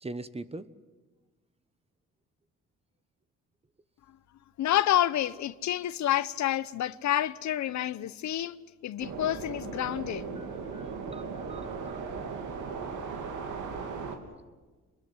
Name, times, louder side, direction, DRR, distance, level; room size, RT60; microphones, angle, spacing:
voice 1, 0.0-0.7 10.3-12.0, right 2 dB, 20° right, 1.2 m, -42 dB
voice 2, 4.6-8.6 8.8-10.3, left 12 dB, 70° left, 0.9 m, -28 dB
sound 1, 9.0-14.2, right 5 dB, 80° right, 3.2 m, -37 dB
27.0 x 21.0 x 7.9 m
cardioid pair, 90°, 30 cm